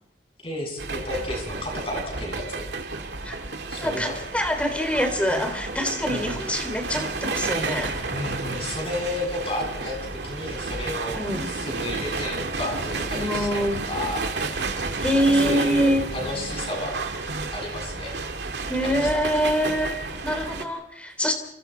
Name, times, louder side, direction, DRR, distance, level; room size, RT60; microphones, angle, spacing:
voice 1, 0.4-2.7 3.7-4.1 6.1-6.3 8.1-9.9 10.2-11.2 11.5-14.3 14.8-14.9 15.3-17.0 17.5-18.1 18.8-19.1, left 1 dB, 30° left, 1 dB, 7.4 m, -32 dB
sound 1, 0.8-20.6, right 3 dB, 70° right, 2.3 m, -31 dB
voice 2, 3.8-8.0 11.2-11.5 13.1-13.8 15.0-16.0 18.7-21.3, equal, 5° left, 6 dB, 3.5 m, -25 dB
29.0 x 26.5 x 4.6 m, 0.78 s
head